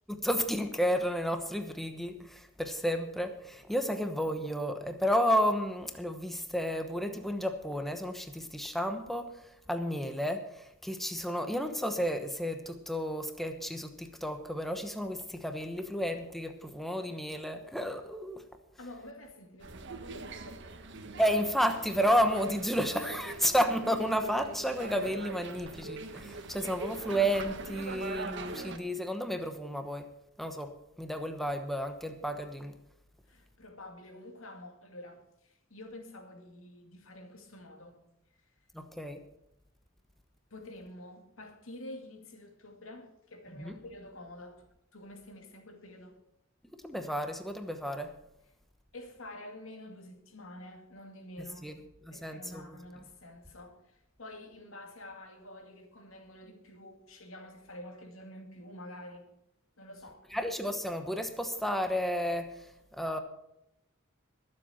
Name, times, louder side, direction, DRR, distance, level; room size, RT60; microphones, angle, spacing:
voice 1, 0.1-9.3 9.7-18.4 21.2-30.1 30.4-32.7 38.7-39.2 43.6-43.7 46.8-48.1 51.6-51.8 52.1-52.8 60.3-62.5 63.0-63.2, equal, ahead, 1.0 m, -32 dB
voice 2, 18.8-20.8 33.3-38.0 40.5-46.3 48.9-51.8 52.1-59.3 59.8-60.3, left 1 dB, 90° left, 2.3 m, -48 dB
sound 1, 19.6-28.8, right 3 dB, 60° right, 1.3 m, -42 dB
22.0 x 7.7 x 4.4 m
head